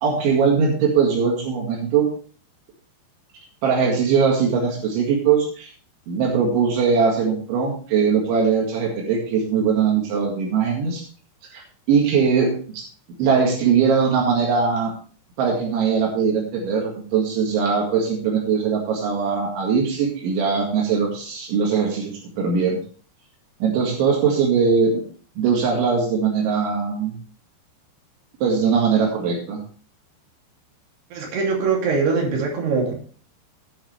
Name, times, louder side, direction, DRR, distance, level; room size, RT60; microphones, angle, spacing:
voice 1, 0.0-2.1 3.6-5.7 6.1-11.0 11.5-11.6 11.9-12.6 13.2-14.9 15.4-22.8 23.6-25.0 25.4-27.2 28.4-29.6, right 6 dB, 85° right, -1 dB, 4.4 m, -20 dB
voice 2, 31.1-32.9, right 4 dB, 65° right, -1 dB, 4.8 m, -22 dB
18.0 x 6.4 x 3.4 m, 0.42 s
omnidirectional pair, 5.3 m